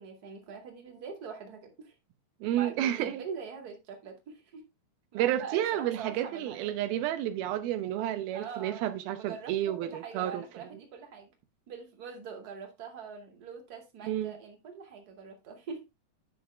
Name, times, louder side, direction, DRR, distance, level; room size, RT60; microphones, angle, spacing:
voice 1, 0.0-1.9 2.5-4.7 5.1-6.7 8.3-11.3 11.7-15.8, right 6 dB, 30° right, 2.3 m, -43 dB
voice 2, 2.4-3.2 5.1-10.4 14.0-14.4, right 12 dB, 90° right, 2.8 m, -31 dB
10.5 x 6.1 x 3.4 m
omnidirectional pair, 4.2 m